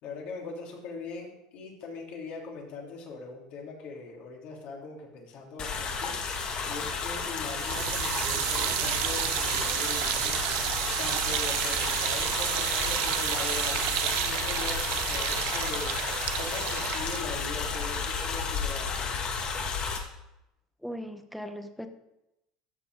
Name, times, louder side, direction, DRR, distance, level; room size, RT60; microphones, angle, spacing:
voice 1, 0.0-10.3 11.0-19.1, left 4 dB, 60° left, -1 dB, 3.0 m, -41 dB
sound 1, 5.6-20.0, left 5 dB, 45° left, 1.9 m, -32 dB
sound 2, 7.6-18.7, right 13 dB, 75° right, 0.7 m, -31 dB
voice 2, 20.8-21.9, equal, ahead, 7 dB, 1.0 m, -38 dB
13.5 x 6.0 x 4.7 m, 0.89 s
supercardioid pair, 105°, 2 cm